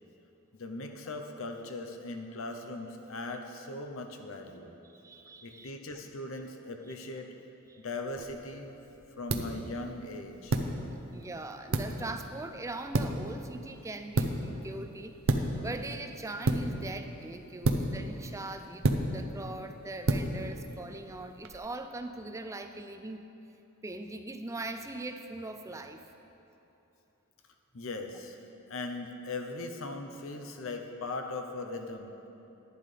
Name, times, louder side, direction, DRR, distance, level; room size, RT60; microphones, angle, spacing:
voice 1, 0.5-4.8 5.4-7.3 7.8-8.8 9.2-10.6 27.7-28.4 28.7-32.3, left 2 dB, 65° left, 5 dB, 0.7 m, -39 dB
voice 2, 4.8-5.7 7.7-7.8 11.1-15.1 15.6-23.2 23.8-26.0, right 2 dB, 15° right, 7 dB, 0.3 m, -41 dB
sound 1, 8.1-21.6, right 2 dB, 65° right, 0.6 m, -33 dB
11.0 x 10.0 x 3.4 m, 3.0 s
head